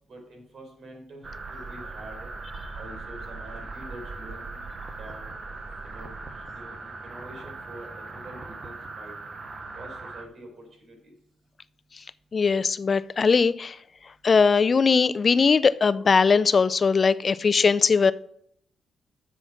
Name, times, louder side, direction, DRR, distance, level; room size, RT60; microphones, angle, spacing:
voice 1, 0.1-2.3 2.7-4.7 5.0-5.3 5.8-9.1 9.7-11.1, right 1 dB, 60° right, 4.2 m, -46 dB
sound 1, 1.2-10.3, right 3 dB, 35° right, 1.0 m, -39 dB
voice 2, 12.3-13.8 14.2-18.1, left 5 dB, 40° left, 0.4 m, -20 dB
7.8 x 7.1 x 6.0 m
cardioid pair, 100°, 0 cm